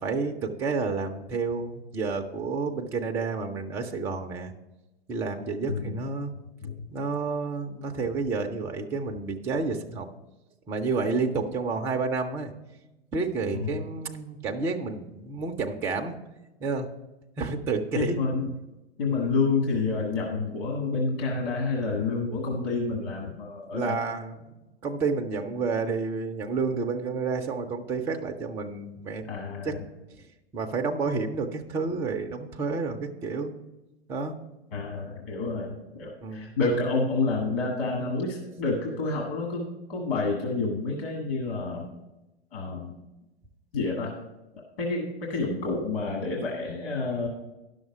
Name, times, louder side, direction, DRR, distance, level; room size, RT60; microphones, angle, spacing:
voice 1, 0.0-4.5 5.1-6.3 6.9-10.1 10.7-12.5 13.1-16.2 16.6-16.9 17.4-18.2 19.1-19.3 23.7-24.4 24.8-29.2 29.6-29.8 30.5-33.5 34.1-34.4 36.2-36.5, right 4 dB, 10° right, 3 dB, 0.3 m, -30 dB
voice 2, 17.9-18.5 19.0-24.0 29.3-29.8 34.7-41.9 42.5-42.9 43.7-44.2 44.5-47.3, left 3 dB, 60° left, -1 dB, 1.8 m, -29 dB
10.5 x 6.4 x 4.9 m, 1.0 s
figure-of-eight pair, 105°, 32 cm